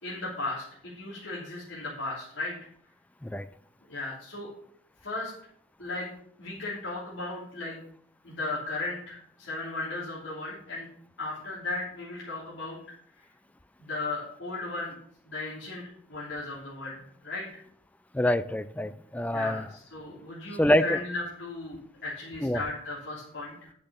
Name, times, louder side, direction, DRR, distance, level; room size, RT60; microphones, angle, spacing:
voice 1, 0.0-2.5 3.9-4.5 5.0-5.3 5.8-6.1 6.4-7.8 8.2-10.9 11.2-12.8 13.8-15.0 15.3-15.8 16.1-17.6 19.3-23.7, left 2 dB, 80° left, -7 dB, 3.0 m, -36 dB
voice 2, 18.1-19.6 20.6-20.9 22.4-22.6, equal, 10° left, 14 dB, 0.4 m, -25 dB
10.0 x 5.8 x 6.8 m, 0.67 s
head